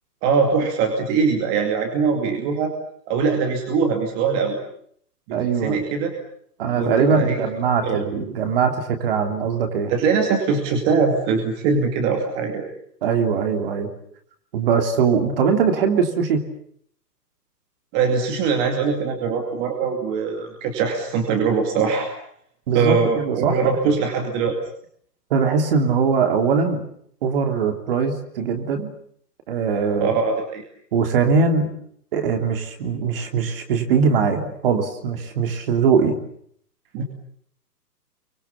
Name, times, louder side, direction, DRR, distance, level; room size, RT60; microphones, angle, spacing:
voice 1, 0.2-2.7 3.1-4.6 5.3-6.1 6.7-7.5 7.8-8.0 9.9-12.7 17.9-22.1 22.7-24.6 30.0-30.6 36.9-37.0, right 5 dB, 20° right, 3 dB, 2.3 m, -22 dB
voice 2, 5.3-5.8 6.6-9.9 13.0-13.9 14.5-16.4 22.7-23.6 25.3-26.9 27.2-28.9 29.5-30.1 30.9-31.7 32.1-36.2, right 5 dB, 35° right, 5 dB, 3.1 m, -21 dB
29.0 x 24.0 x 7.1 m, 0.65 s
hypercardioid pair, 155°, 48 cm